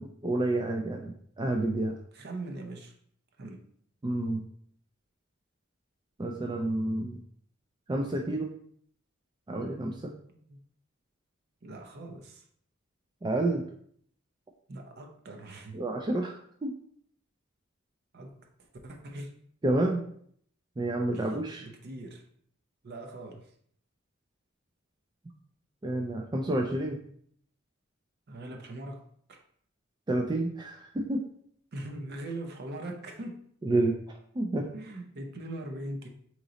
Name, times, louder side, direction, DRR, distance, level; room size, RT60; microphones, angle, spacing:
voice 1, 0.0-2.0 4.0-4.4 6.2-7.2 7.9-8.5 9.5-10.1 13.2-13.6 15.7-16.7 19.6-20.0 20.8-21.7 25.8-27.0 30.1-31.2 33.6-33.9 34.3-34.7, right 2 dB, 20° right, 2 dB, 0.3 m, -29 dB
voice 2, 2.1-2.9 3.4-3.6 10.3-10.6 11.6-12.4 14.7-15.8 18.1-18.5 18.8-19.3 21.1-21.3 21.6-22.2 22.8-23.5 28.3-29.4 31.7-33.5 34.7-36.1, right 1 dB, 55° right, 4 dB, 0.6 m, -41 dB
3.8 x 3.0 x 3.9 m, 0.63 s
head